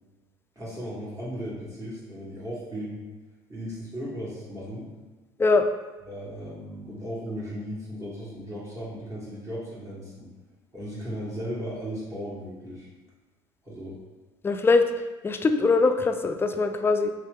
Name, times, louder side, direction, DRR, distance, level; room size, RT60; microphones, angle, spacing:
voice 1, 0.5-3.0 3.5-4.9 6.1-10.3 10.7-12.9 13.6-14.0, equal, 25° right, -8 dB, 1.4 m, -36 dB
voice 2, 14.4-14.8 15.2-17.1, left 3 dB, 20° left, 7 dB, 0.4 m, -22 dB
3.1 x 2.8 x 3.5 m, 1.2 s
hypercardioid pair, 75°, 12 cm